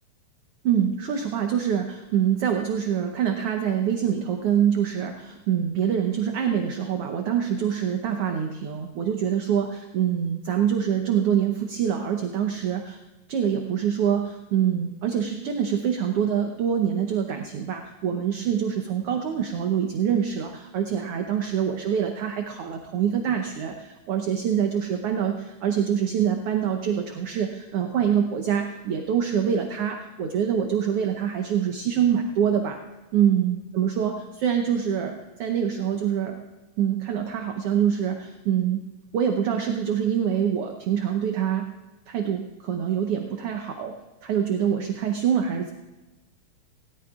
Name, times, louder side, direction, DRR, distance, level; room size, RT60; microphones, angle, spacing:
voice 1, 0.6-13.0 13.3-32.8 33.1-36.4 36.8-38.8 39.1-41.7 42.1-43.9 44.2-45.7, right 8 dB, 65° right, 4 dB, 1.6 m, -25 dB
20.5 x 17.5 x 2.4 m, 1.1 s
omnidirectional pair, 3.4 m